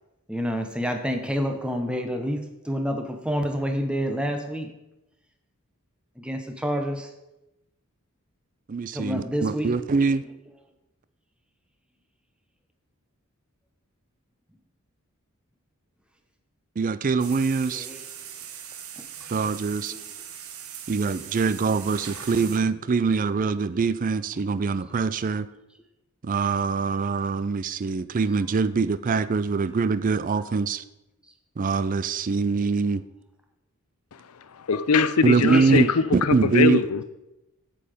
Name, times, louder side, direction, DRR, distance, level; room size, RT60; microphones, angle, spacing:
voice 1, 0.3-4.7 6.2-7.1 8.9-9.8 17.7-18.0 19.9-20.0 35.3-35.7, equal, 5° right, 5 dB, 0.9 m, -28 dB
voice 2, 8.7-10.2 16.8-17.9 19.3-19.9 20.9-25.5 26.2-30.8 31.6-33.0 35.2-36.8, right 4 dB, 40° right, 15 dB, 0.4 m, -24 dB
sound 1, 17.2-22.6, right 8 dB, 75° right, 1.0 m, -40 dB
voice 3, 34.7-35.8 36.2-37.0, left 5 dB, 85° left, 13 dB, 0.6 m, -21 dB
8.4 x 7.7 x 5.1 m, 0.93 s
head